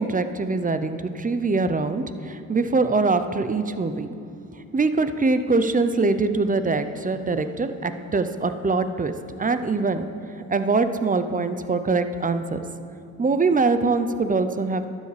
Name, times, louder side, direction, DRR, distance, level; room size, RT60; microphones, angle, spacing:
voice 1, 0.0-4.1 4.7-9.1 9.4-10.1 10.5-12.6 13.2-14.9, right 3 dB, 20° right, 10 dB, 0.6 m, -23 dB
12.0 x 8.1 x 3.3 m, 2.4 s
hypercardioid pair, 50°, 42 cm